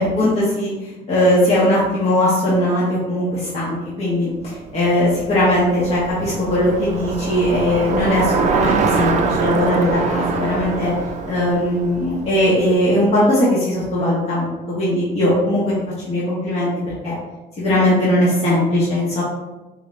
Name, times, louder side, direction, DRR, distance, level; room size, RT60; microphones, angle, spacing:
voice 1, 0.0-10.9 11.3-15.7 16.0-16.7 17.0-17.2 17.6-19.2, left 1 dB, 40° left, -8 dB, 1.2 m, -19 dB
Bicycle, 4.5-12.8, right 5 dB, 45° right, 0.4 m, -24 dB
3.8 x 2.6 x 3.2 m, 1.1 s
cardioid pair, 110°, 17 cm